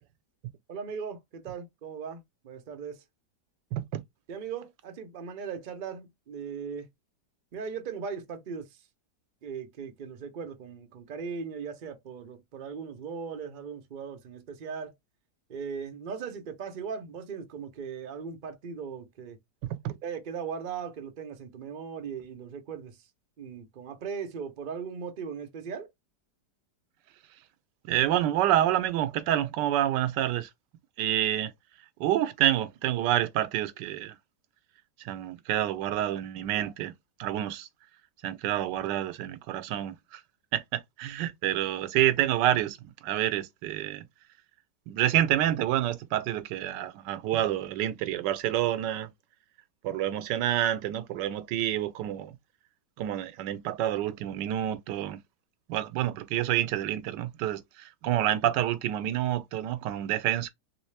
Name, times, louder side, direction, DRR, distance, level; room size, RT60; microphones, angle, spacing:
voice 1, 0.7-3.0 4.3-6.9 7.5-8.7 9.4-14.9 15.5-19.4 20.0-23.0 23.4-25.9, right 6 dB, 65° right, 0.5 m, -38 dB
voice 2, 3.7-4.0 19.8-19.9 27.9-30.5 31.0-31.5 32.0-34.2 35.0-36.9 37.2-37.7 38.2-40.2 40.5-44.0 44.9-49.1 49.8-52.3 53.0-55.2 55.7-60.5, right 12 dB, 85° right, 1.2 m, -28 dB
3.1 x 3.0 x 3.2 m
omnidirectional pair, 1.9 m